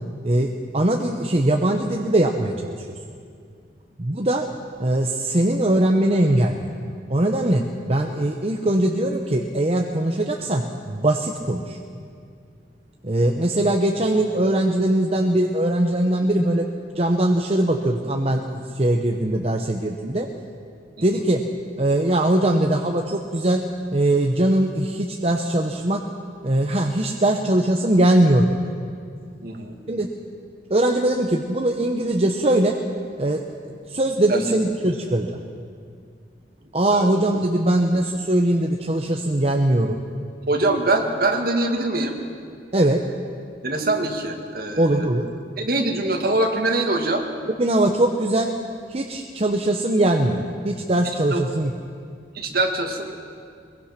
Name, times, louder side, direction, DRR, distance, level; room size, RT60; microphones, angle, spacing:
voice 1, 0.2-2.9 4.0-4.5 4.8-6.7 7.1-11.8 13.0-16.7 16.9-20.3 21.0-21.4 21.8-23.6 23.9-26.0 26.4-28.6 29.9-30.1 30.7-32.7 33.2-33.4 33.7-35.4 36.7-40.0 42.7-43.0 44.8-45.3 47.6-48.5 48.9-51.7, right 1 dB, 35° right, 2 dB, 0.9 m, -21 dB
voice 2, 29.4-29.7 34.3-34.4 36.9-37.1 40.5-42.2 43.6-45.1 45.6-47.2 51.3-51.4 52.3-53.1, right 2 dB, 55° right, 4 dB, 2.1 m, -23 dB
22.5 x 22.0 x 5.9 m, 2.3 s
head